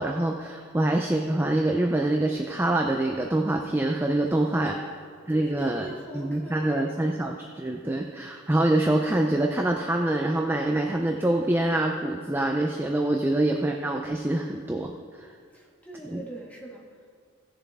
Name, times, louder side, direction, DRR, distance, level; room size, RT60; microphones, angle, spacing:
voice 1, 0.0-4.8 5.3-5.9 6.1-14.9 15.2-15.3 16.1-16.2, right 1 dB, 10° right, 2 dB, 0.4 m, -25 dB
voice 2, 4.3-7.1 15.5-17.2, right 1 dB, 5° left, -3 dB, 1.5 m, -43 dB
16.5 x 6.7 x 3.6 m, 2.2 s
head